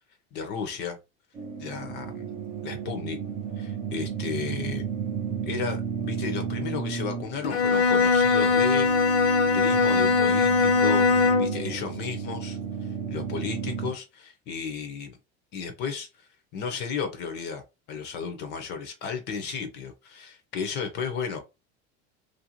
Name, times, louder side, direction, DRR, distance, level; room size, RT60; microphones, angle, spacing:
voice 1, 0.3-1.0 1.6-2.3 2.6-3.2 3.6-4.8 5.4-12.6 13.1-15.2 15.5-21.4, left 6 dB, 35° left, 0.5 m, -34 dB
sound 1, 1.3-13.9, right 7 dB, 20° right, 0.3 m, -33 dB
Bowed string instrument, 7.4-11.6, left 4 dB, 85° left, 1.0 m, -21 dB
3.3 x 2.5 x 2.8 m
cardioid pair, 175°, 32 cm